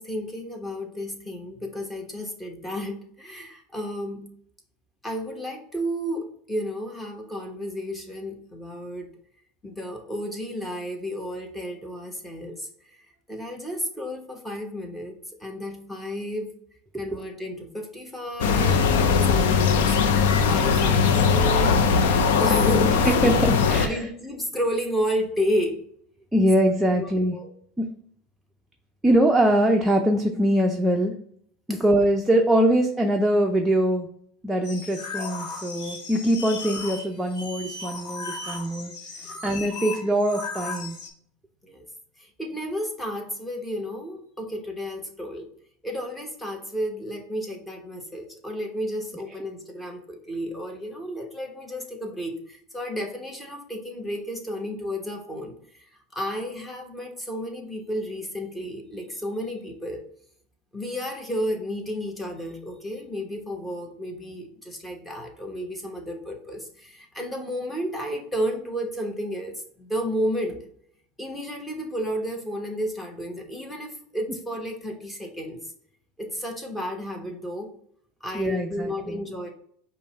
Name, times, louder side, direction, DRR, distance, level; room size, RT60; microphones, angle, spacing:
voice 1, 0.0-4.3 5.0-9.1 9.6-12.7 13.3-16.5 17.0-18.9 19.3-20.0 20.5-21.8 22.4-23.3 23.8-25.8 27.0-27.5 31.7-31.8 39.2-39.3 41.6-41.8 42.2-45.5 45.8-55.9 56.1-60.0 60.7-70.6 71.2-75.6 76.2-77.7 78.2-79.5, equal, 10° left, 2 dB, 1.1 m, -32 dB
sound 1, 18.4-23.9, left 5 dB, 80° left, 0.5 m, -20 dB
voice 2, 23.0-24.1 26.3-27.4 27.8-27.9 29.0-31.2 31.7-34.1 34.4-38.9 39.4-41.0 78.3-79.2, right 1 dB, 10° right, 1 dB, 0.5 m, -22 dB
sound 2, 34.6-41.1, left 3 dB, 65° left, 1.2 m, -36 dB
5.2 x 2.1 x 4.4 m, 0.63 s
supercardioid pair, 120°, 0 cm